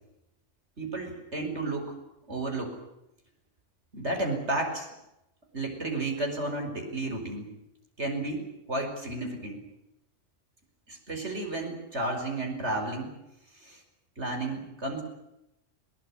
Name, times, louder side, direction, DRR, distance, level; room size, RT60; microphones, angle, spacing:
voice 1, 0.8-2.0 2.3-2.8 3.9-4.9 5.5-7.5 8.0-9.6 10.9-13.1 13.5-13.8 14.2-15.0, right 2 dB, 60° right, 4 dB, 5.5 m, -32 dB
21.5 x 20.0 x 9.9 m, 0.87 s
omnidirectional pair, 1.3 m